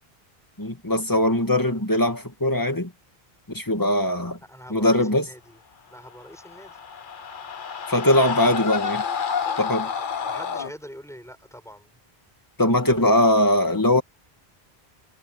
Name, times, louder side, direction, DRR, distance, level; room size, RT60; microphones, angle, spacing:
voice 1, 0.6-2.9 3.5-4.4 4.7-5.3 7.9-9.0 9.6-9.9 12.6-14.0, left 1 dB, 20° left, 2.4 m, -21 dB
voice 2, 4.4-5.6 5.9-6.8 10.0-12.0, equal, 5° left, 7.8 m, -44 dB
sound 1, 6.2-10.7, left 6 dB, 55° left, 1.1 m, -29 dB
omnidirectional pair, 1.0 m